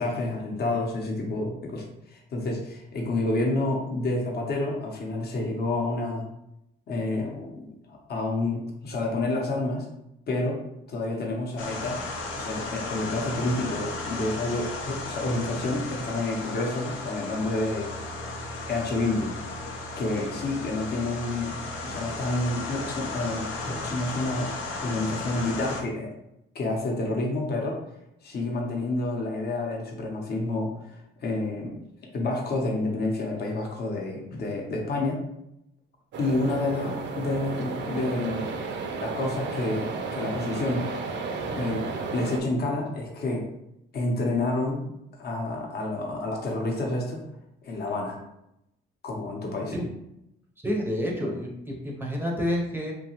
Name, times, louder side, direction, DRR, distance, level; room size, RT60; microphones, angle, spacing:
voice 1, 0.0-6.3 6.9-9.9 10.3-10.6 10.9-12.0 12.3-17.9 18.7-19.7 20.0-24.5 24.8-26.1 26.5-27.8 28.2-31.7 32.1-35.2 36.2-38.5 39.0-41.0 41.5-43.5 43.9-44.9 45.2-47.3 47.6-48.2 49.0-49.7, left 2 dB, 55° left, 0 dB, 0.7 m, -29 dB
sound 1, 11.6-25.8, left 2 dB, 85° left, 0.5 m, -35 dB
sound 2, 36.1-42.4, right 4 dB, 65° right, 0.4 m, -33 dB
voice 2, 50.6-52.9, equal, 10° right, -2 dB, 0.5 m, -29 dB
2.8 x 2.2 x 2.8 m, 0.84 s
cardioid pair, 90°, 20 cm